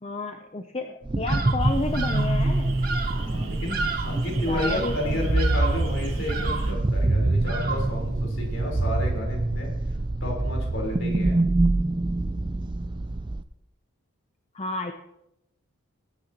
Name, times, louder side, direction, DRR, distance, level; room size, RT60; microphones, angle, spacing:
voice 1, 0.0-2.8 4.5-5.3 14.5-14.9, left 3 dB, 30° left, 5 dB, 0.6 m, -31 dB
sound 1, 1.0-13.4, right 2 dB, 20° right, 0.4 m, -25 dB
Bird vocalization bird call bird song, 1.3-1.7 1.9-2.4 2.8-3.3 3.7-4.2 4.5-5.0 5.4-5.9 6.3-6.8 7.4-8.0, right 4 dB, 45° right, 1.4 m, -32 dB
sound 2, 1.6-6.7, right 3 dB, 65° right, 2.0 m, -42 dB
voice 2, 3.1-9.7 10.2-11.4, left 1 dB, 60° left, 0 dB, 3.9 m, -32 dB
19.5 x 9.5 x 2.9 m, 0.85 s
head